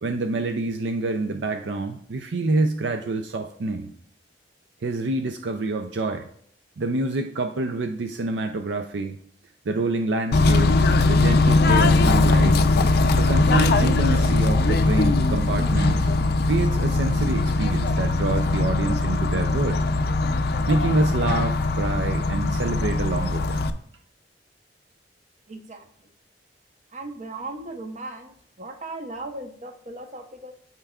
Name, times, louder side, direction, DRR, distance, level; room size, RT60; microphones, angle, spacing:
voice 1, 0.0-3.9 4.8-6.3 6.8-9.2 9.7-12.6 13.2-16.1 16.4-19.8 20.7-23.7, right 3 dB, 70° right, 5 dB, 0.5 m, -27 dB
Bird / Train, 10.3-23.7, left 2 dB, 60° left, 0.5 m, -20 dB
voice 2, 25.5-26.1 26.9-30.5, right 2 dB, 40° right, 5 dB, 0.9 m, -37 dB
12.5 x 4.4 x 2.4 m, 0.63 s
head